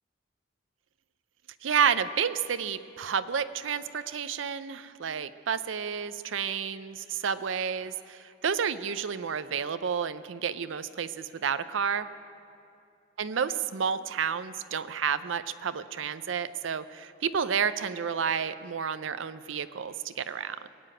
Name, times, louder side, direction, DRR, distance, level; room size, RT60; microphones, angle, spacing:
voice 1, 1.6-12.1 13.2-20.7, right 7 dB, 85° right, 13 dB, 0.5 m, -30 dB
21.0 x 7.7 x 8.9 m, 2.5 s
head